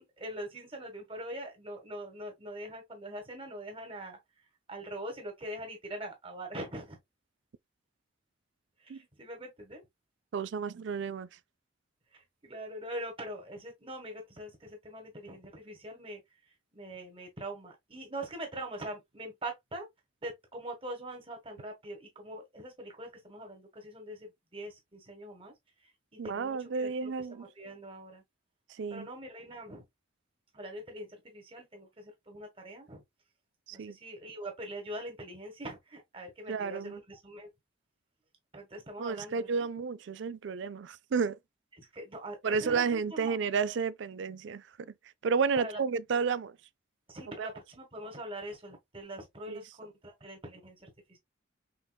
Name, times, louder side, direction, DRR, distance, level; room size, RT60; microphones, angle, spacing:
voice 1, 0.0-4.2 4.7-7.0 8.8-9.8 12.1-16.2 16.7-19.9 20.2-25.5 26.2-28.2 28.9-29.8 30.5-33.0 33.7-37.5 38.5-39.6 41.8-43.4 45.6-45.8 47.1-51.2, right 1 dB, 30° right, 1.4 m, -43 dB
voice 2, 10.3-11.3 26.2-27.4 28.8-29.1 33.7-34.0 36.5-37.0 39.0-41.4 42.4-44.9 45.2-46.6 47.4-47.5 49.5-49.6, right 5 dB, 70° right, 0.4 m, -31 dB
5.8 x 3.6 x 2.3 m
head